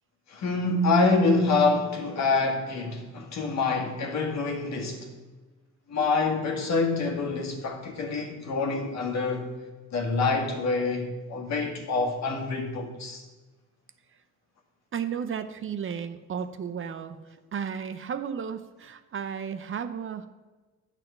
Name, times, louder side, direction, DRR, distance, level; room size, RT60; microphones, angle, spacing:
voice 1, 0.3-5.1 5.9-9.5 9.9-13.2, left 3 dB, 65° left, 1.7 m, -26 dB
voice 2, 14.9-20.3, right 7 dB, 45° right, 0.6 m, -34 dB
9.0 x 4.1 x 6.7 m
cardioid pair, 90°, 30 cm